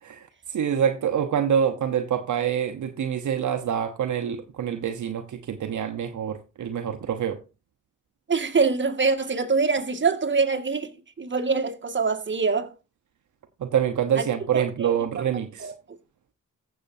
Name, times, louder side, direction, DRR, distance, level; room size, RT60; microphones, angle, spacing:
voice 1, 0.0-7.4 13.6-15.7, right 8 dB, 65° right, 1.0 m, -26 dB
voice 2, 8.3-10.9 11.2-12.7 14.2-14.3 14.5-14.9 15.6-15.7, right 4 dB, 35° right, 1.8 m, -24 dB
15.0 x 6.8 x 2.7 m
cardioid pair, 65°, 32 cm